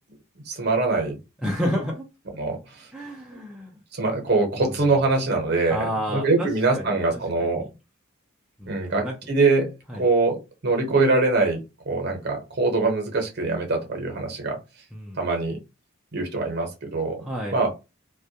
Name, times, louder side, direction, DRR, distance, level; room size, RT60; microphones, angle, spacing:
voice 1, 0.5-1.2 2.3-2.9 3.9-7.7 8.7-10.4 10.6-11.6 11.9-14.6 15.2-15.6 16.1-17.2 17.5-17.7, right 3 dB, 50° right, 2 dB, 0.8 m, -23 dB
voice 2, 1.4-2.0 2.9-3.7 4.6-4.8 5.7-7.7 8.6-9.1 9.9-10.1 14.9-15.2 17.2-17.6, equal, 5° right, -3 dB, 0.4 m, -31 dB
2.2 x 2.1 x 2.7 m, 0.27 s
head